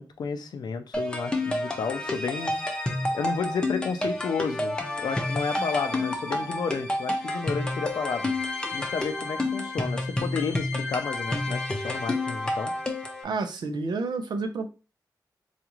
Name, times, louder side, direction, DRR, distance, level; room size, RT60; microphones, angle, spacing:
voice 1, 0.0-2.5 3.1-8.3 8.7-12.7, left 5 dB, 70° left, 8 dB, 0.5 m, -31 dB
sound 1, 0.9-13.2, left 1 dB, 10° left, 0.6 m, -29 dB
voice 2, 13.2-14.7, right 3 dB, 80° right, 7 dB, 0.6 m, -30 dB
4.0 x 2.4 x 3.0 m, 0.32 s
wide cardioid pair, 175°, 7 cm